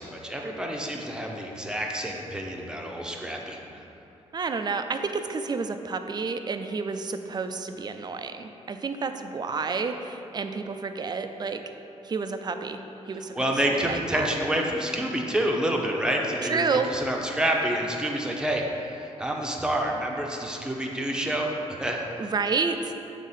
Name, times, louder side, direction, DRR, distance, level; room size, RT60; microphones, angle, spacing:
voice 1, 0.0-3.6 13.4-22.0, right 1 dB, 5° right, 0 dB, 0.9 m, -28 dB
voice 2, 4.3-11.6 12.0-12.8 13.1-14.3 16.4-16.9 21.1-21.2 22.2-22.9, right 4 dB, 35° right, 7 dB, 0.4 m, -30 dB
7.3 x 3.6 x 5.6 m, 2.9 s
cardioid pair, 95°, 12 cm